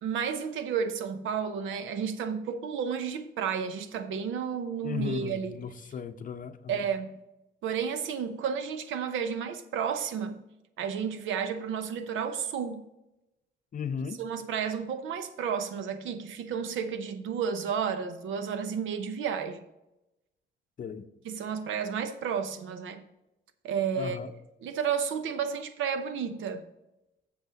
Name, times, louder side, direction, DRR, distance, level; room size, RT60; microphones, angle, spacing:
voice 1, 0.0-5.6 6.7-7.2 7.6-10.4 10.8-12.8 14.2-19.6 21.2-23.0 23.6-24.2 24.6-26.7, right 7 dB, 80° right, 0.8 m, -32 dB
voice 2, 4.8-6.8 13.7-14.2 20.8-21.1 24.0-24.3, left 6 dB, 45° left, 0.6 m, -36 dB
7.9 x 6.8 x 3.9 m
cardioid pair, 90°, 20 cm